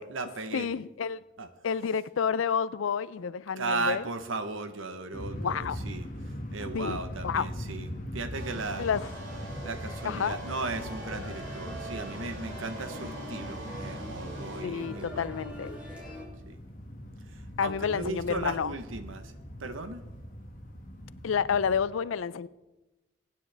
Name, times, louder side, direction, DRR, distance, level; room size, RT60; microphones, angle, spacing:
voice 1, 0.0-0.7 1.4-1.5 3.6-8.9 9.6-15.4 16.4-16.6 17.3-19.3 19.6-20.0, right 3 dB, 85° right, 1.0 m, -36 dB
voice 2, 0.5-1.2 1.6-4.0 5.4-5.8 6.7-7.5 8.8-9.1 10.0-10.4 14.6-15.7 17.6-18.7 21.2-22.5, left 6 dB, 85° left, 0.4 m, -29 dB
sound 1, 5.1-21.8, equal, 40° left, 1.9 m, -41 dB
sound 2, 8.3-14.6, right 2 dB, 65° right, 2.4 m, -47 dB
sound 3, 9.1-16.2, equal, 5° right, 3.7 m, -43 dB
23.5 x 9.5 x 3.4 m
head